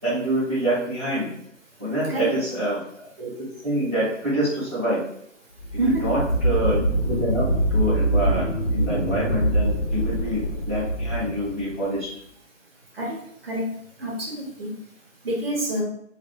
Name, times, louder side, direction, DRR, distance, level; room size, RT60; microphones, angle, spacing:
voice 1, 0.0-1.3 1.8-2.8 3.2-5.0 5.9-12.1, right 1 dB, 10° right, -16 dB, 1.1 m, -26 dB
sound 1, 5.6-12.0, right 1 dB, 55° left, 0.5 m, -24 dB
voice 2, 14.0-14.7 15.2-15.8, right 1 dB, 50° right, -4 dB, 1.0 m, -26 dB
2.5 x 2.4 x 2.3 m, 0.72 s
figure-of-eight pair, 165°, 39 cm